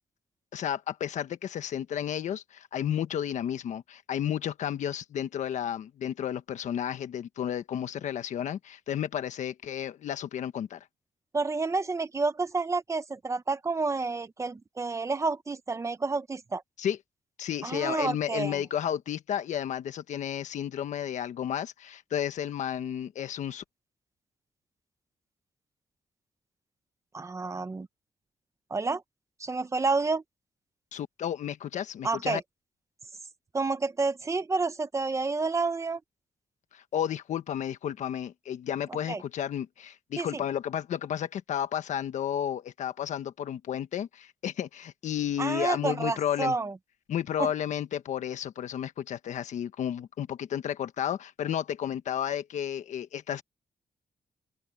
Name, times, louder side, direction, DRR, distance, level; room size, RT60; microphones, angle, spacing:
voice 1, 0.5-10.8 16.8-17.0 17.4-23.6 30.9-32.4 36.7-46.6 47.1-53.4, left 10 dB, 80° left, 1.4 m, -32 dB
voice 2, 11.3-16.6 17.6-18.6 27.1-27.9 28.7-29.0 29.4-30.2 32.0-32.4 33.5-36.0 39.1-39.2 40.2-40.4 45.4-46.7 47.4-47.5, right 3 dB, 25° right, 1.0 m, -29 dB
open air
wide cardioid pair, 130°, 12 cm